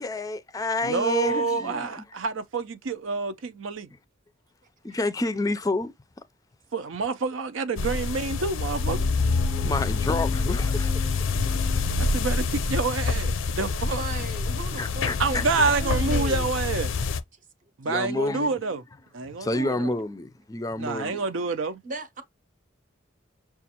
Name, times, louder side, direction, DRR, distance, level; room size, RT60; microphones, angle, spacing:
voice 1, 0.0-1.9 4.8-5.9 9.6-11.1 14.8-15.4 17.9-18.5 19.4-21.2, left 2 dB, 20° left, 0.4 m, -29 dB
voice 2, 0.8-3.9 6.7-9.1 12.0-14.0 15.2-16.9 17.8-18.8 19.1-19.9 20.8-21.8, right 4 dB, 90° right, 0.6 m, -28 dB
sound 1, 7.8-17.2, left 4 dB, 90° left, 0.5 m, -26 dB
sound 2, 8.8-12.6, equal, 10° right, 0.8 m, -40 dB
voice 3, 14.0-16.5 21.8-22.2, right 2 dB, 45° right, 0.7 m, -37 dB
6.1 x 2.4 x 2.8 m
head